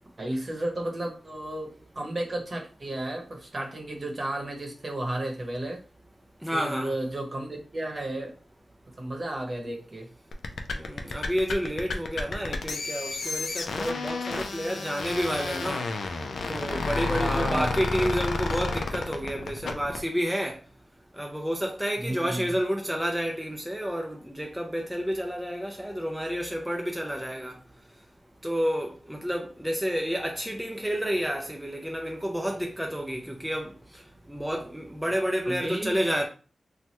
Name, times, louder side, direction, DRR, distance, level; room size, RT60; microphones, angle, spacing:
voice 1, 0.2-5.8 6.5-8.4 9.0-10.1 17.0-17.7 22.0-22.4 35.5-35.9, right 1 dB, 40° right, 0.9 m, -33 dB
voice 2, 6.4-6.9 10.7-15.9 16.5-20.6 21.1-27.5 28.4-33.7 34.3-36.3, equal, 5° right, 0.3 m, -30 dB
sound 1, 10.3-20.0, left 3 dB, 85° left, 0.3 m, -31 dB
3.1 x 2.2 x 2.8 m
wide cardioid pair, 90°, 0 cm